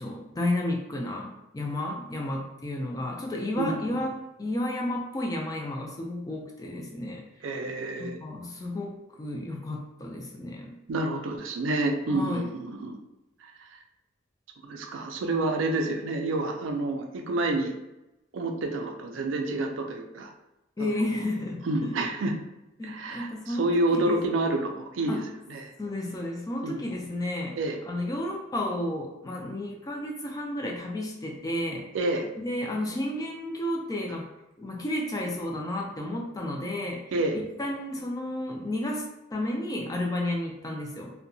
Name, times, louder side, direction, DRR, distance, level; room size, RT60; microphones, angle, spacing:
voice 1, 0.0-7.2 8.0-10.8 12.1-12.5 20.8-21.9 22.8-24.2 25.1-25.2 25.8-27.6 27.8-31.9 32.4-34.3 34.6-37.0 37.3-41.1, left 1 dB, 20° left, 0 dB, 0.3 m, -32 dB
voice 2, 3.6-4.0 7.4-8.2 10.9-13.0 13.4-13.8 14.6-17.7 18.3-20.3 20.8-21.0 21.7-22.3 22.8-25.2 25.5-25.7 26.6-26.8 27.6-27.8 31.9-32.3 37.1-37.4, right 2 dB, 80° right, 3 dB, 0.4 m, -29 dB
2.7 x 2.1 x 2.6 m, 0.94 s
head